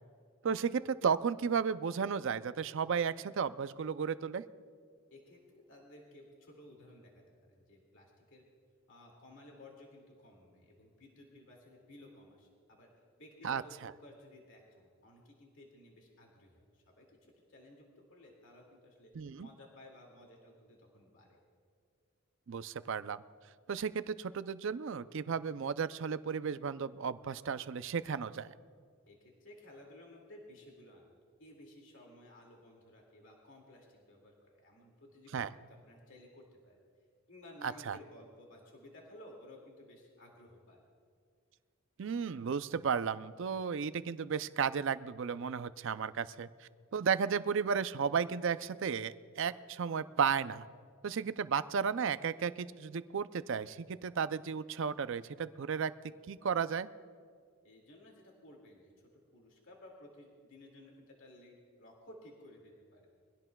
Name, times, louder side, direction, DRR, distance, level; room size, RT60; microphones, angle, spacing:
voice 1, 0.4-4.4 13.4-13.6 19.2-19.5 22.5-23.2 23.7-28.5 35.3-35.5 37.6-38.0 42.0-50.7 51.0-55.9 56.3-56.9, right 6 dB, 60° right, 14 dB, 0.4 m, -34 dB
voice 2, 5.1-8.4 8.9-12.9 13.2-19.1 19.4-21.4 29.1-34.4 34.6-36.8 37.3-40.8 57.6-63.1, left 1 dB, 60° left, -1 dB, 2.2 m, -56 dB
23.5 x 16.5 x 2.3 m, 2.1 s
head